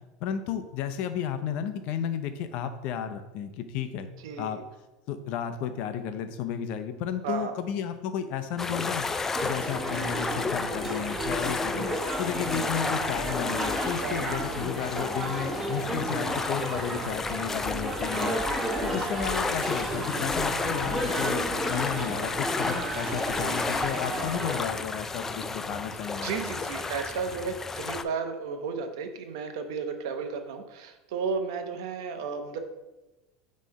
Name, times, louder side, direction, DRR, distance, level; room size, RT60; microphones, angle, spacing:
voice 1, 0.2-4.1 4.4-4.6 5.1-9.1 9.4-11.9 12.2-18.4 18.8-26.3, left 8 dB, 60° left, 9 dB, 0.6 m, -33 dB
voice 2, 4.2-4.6 7.2-7.5 13.8-14.4 19.3-19.5 25.7-25.8 26.1-32.6, right 5 dB, 80° right, 6 dB, 0.8 m, -33 dB
sound 1, 8.6-28.0, left 4 dB, 15° left, 0.3 m, -33 dB
sound 2, 9.3-24.6, right 1 dB, 10° right, 1.1 m, -33 dB
5.7 x 3.2 x 5.3 m, 1.0 s
supercardioid pair, 120°, 2 cm